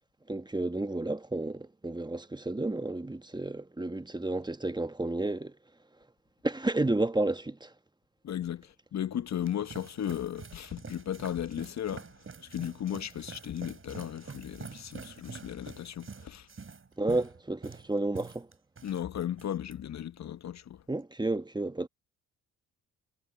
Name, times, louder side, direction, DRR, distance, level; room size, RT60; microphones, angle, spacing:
voice 1, 0.3-5.5 6.4-7.7 17.0-18.5 20.9-21.9, right 2 dB, 10° right, 1.2 m, -31 dB
voice 2, 8.2-12.1 12.4-16.5 18.8-20.8, left 10 dB, 50° left, 1.0 m, -36 dB
sound 1, 9.1-19.0 19.3-19.7, right 5 dB, 35° right, 6.1 m, -46 dB
supercardioid pair, 60°, 35 cm